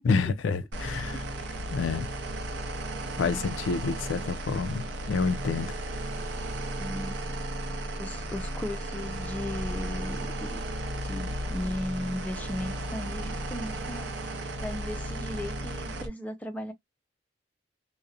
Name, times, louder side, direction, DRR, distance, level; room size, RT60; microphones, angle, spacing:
voice 1, 0.1-1.2 1.7-2.1 3.1-5.7, left 4 dB, 90° left, 0.4 m, -28 dB
sound 1, 0.7-16.1, right 1 dB, 65° right, 0.5 m, -34 dB
voice 2, 1.1-1.7 6.8-7.2 8.0-10.6 11.0-16.7, left 1 dB, 10° left, 0.3 m, -37 dB
2.4 x 2.0 x 2.6 m
head